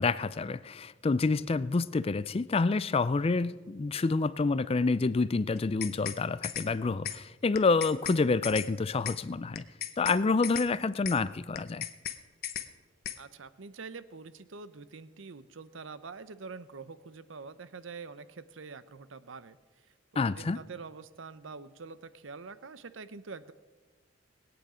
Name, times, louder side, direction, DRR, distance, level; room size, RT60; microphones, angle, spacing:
voice 1, 0.0-9.6 10.0-11.9 20.2-20.6, left 3 dB, 30° left, 0.4 m, -28 dB
sound 1, 5.6-6.2 6.4-6.7 7.0-7.2 7.5-8.2 8.4-8.7 9.0-9.2 9.5-10.2 10.4-10.7 11.0-11.2 11.5-12.2 12.4-12.7 13.0-13.2, left 11 dB, 50° left, 0.8 m, -36 dB
voice 2, 13.2-19.6 20.1-23.5, right 4 dB, 65° right, 0.7 m, -45 dB
21.0 x 9.0 x 5.0 m
head